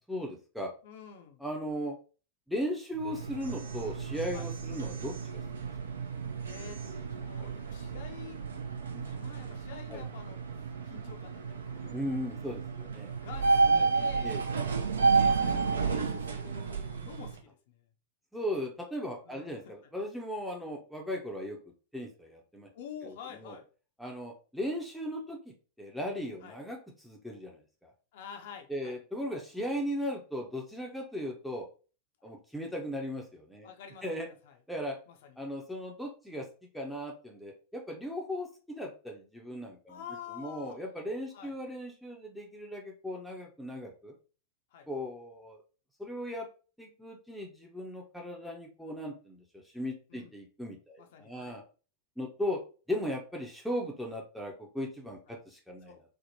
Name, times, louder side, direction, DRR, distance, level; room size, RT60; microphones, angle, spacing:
voice 1, 0.1-0.7 1.4-1.9 2.5-5.7 7.4-7.5 8.9-9.2 9.9-10.0 11.9-13.1 13.8-13.9 14.2-14.4 18.3-21.6 21.9-22.7 23.0-23.6 24.0-25.4 25.8-27.9 28.7-31.7 32.2-33.7 34.0-34.3 34.7-35.0 35.4-36.5 36.7-40.0 40.3-44.1 44.9-45.6 46.0-46.5 46.8-51.6 52.2-52.6 52.9-55.9, equal, ahead, 0.6 m, -37 dB
voice 2, 0.8-1.4 4.3-4.5 6.4-6.8 7.1-8.4 9.0-10.4 10.8-12.3 13.1-14.3 15.0-17.9 19.2-19.9 22.7-23.7 26.4-26.6 28.1-29.0 32.2-32.3 33.6-34.6 35.1-35.4 39.9-40.8 41.3-41.5 44.7-44.9 50.1-50.3 51.0-51.6 55.9-56.0, left 7 dB, 55° left, 0.5 m, -48 dB
sound 1, 2.9-17.4, right 4 dB, 70° right, 0.4 m, -31 dB
3.4 x 2.1 x 2.6 m
figure-of-eight pair, 90°, 0 cm